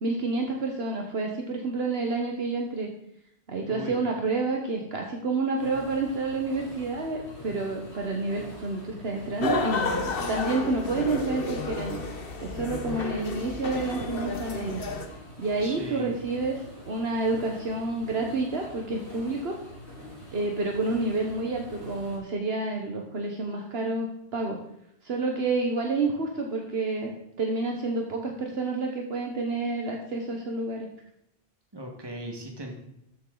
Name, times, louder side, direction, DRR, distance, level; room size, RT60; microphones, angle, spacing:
voice 1, 0.0-2.9 3.5-9.8 10.3-12.0 12.4-14.8 15.4-19.6 20.3-24.6 25.0-30.9, right 3 dB, 65° right, 1 dB, 1.3 m, -29 dB
voice 2, 3.6-4.0 15.6-16.1 31.7-32.8, right 1 dB, 20° right, 2 dB, 1.6 m, -38 dB
sound 1, 5.6-22.2, left 1 dB, 80° left, 3.8 m, -45 dB
sound 2, 9.4-15.1, left 3 dB, 55° left, 1.2 m, -31 dB
13.0 x 7.3 x 3.9 m, 0.80 s
omnidirectional pair, 1.1 m